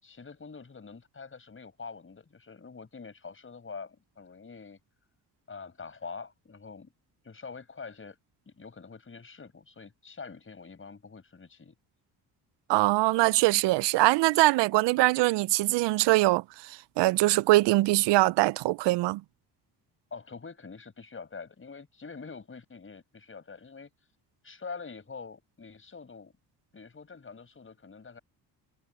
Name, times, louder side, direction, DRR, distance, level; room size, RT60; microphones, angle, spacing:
voice 1, 0.0-4.8 5.5-6.9 7.2-8.2 8.5-11.8 20.1-23.9 24.4-26.3 26.7-28.2, left 5 dB, 30° left, 5.7 m, -45 dB
voice 2, 12.7-19.2, right 19 dB, 85° right, 0.5 m, -23 dB
cardioid pair, 100°, 42 cm